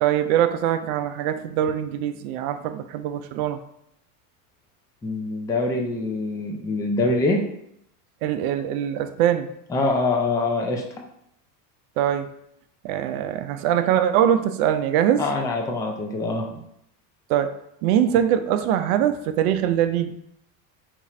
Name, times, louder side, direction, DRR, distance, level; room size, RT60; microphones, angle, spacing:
voice 1, 0.0-3.6 8.2-9.5 12.0-12.3 12.8-15.2 17.3-17.5 17.8-20.1, right 10 dB, 65° right, 9 dB, 0.6 m, -22 dB
voice 2, 5.0-7.4 9.7-10.8 15.2-16.5, left 2 dB, 10° left, 1 dB, 0.3 m, -24 dB
4.5 x 2.4 x 4.2 m, 0.75 s
supercardioid pair, 120°, 46 cm